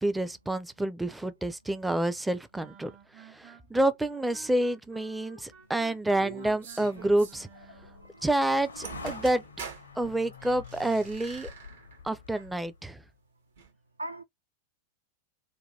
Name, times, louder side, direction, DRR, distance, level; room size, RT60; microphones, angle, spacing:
voice 1, 0.0-2.9 3.2-7.5 8.2-9.4 10.0-11.5 12.0-13.0, right 1 dB, 5° right, 0.4 m, -28 dB
sound 1, 2.5-8.2, right 6 dB, 35° right, 0.9 m, -53 dB
sound 2, 5.6-13.0, left 4 dB, 75° left, 0.6 m, -48 dB
sound 3, 6.2-7.4 8.6-8.7 8.8-9.9 10.3-12.0 12.3-12.5 13.6-13.7, right 6 dB, 60° right, 0.9 m, -45 dB
voice 2, 8.0-8.3 12.3-12.4 14.0-14.2, right 1 dB, 80° right, 0.4 m, -40 dB
2.6 x 2.2 x 3.2 m
figure-of-eight pair, 90°, 0 cm